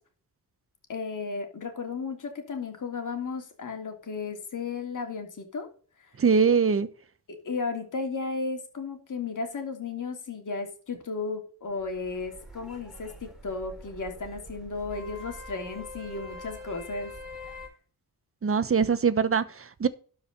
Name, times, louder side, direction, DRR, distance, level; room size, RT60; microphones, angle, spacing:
voice 1, 0.9-5.7 6.0-6.1 7.3-17.1 17.4-17.5, left 4 dB, 50° left, 3.0 m, -34 dB
voice 2, 6.2-6.9 18.4-19.9, right 6 dB, 35° right, 0.9 m, -23 dB
sound 1, 11.7-17.7, left 1 dB, ahead, 3.6 m, -44 dB
12.5 x 5.0 x 5.3 m
wide cardioid pair, 115°, 38 cm